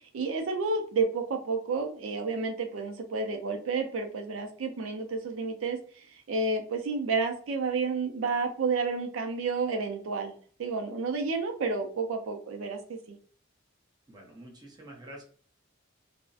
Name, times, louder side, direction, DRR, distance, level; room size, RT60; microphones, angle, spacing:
voice 1, 0.1-13.2, right 4 dB, 80° right, 5 dB, 0.4 m, -31 dB
voice 2, 14.1-15.2, right 1 dB, 20° right, -1 dB, 0.6 m, -47 dB
2.6 x 2.0 x 2.4 m, 0.43 s
head